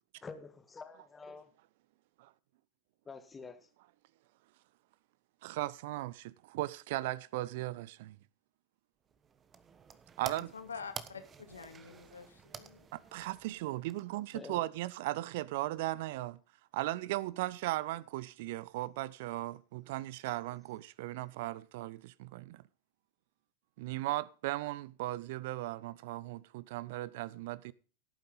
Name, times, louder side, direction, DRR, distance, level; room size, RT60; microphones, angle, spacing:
voice 1, 0.2-1.5 3.1-3.7 14.3-14.6, left 4 dB, 15° left, 1.7 m, -47 dB
voice 2, 5.4-8.2 10.2-10.5 12.9-16.4 16.7-22.6 23.8-27.7, right 17 dB, 50° right, 0.6 m, -37 dB
sound 1, 9.1-14.4, right 6 dB, 20° right, 1.2 m, -50 dB
voice 3, 10.5-12.9, left 5 dB, 75° left, 2.1 m, -47 dB
17.0 x 9.2 x 4.0 m
figure-of-eight pair, 90°, 0 cm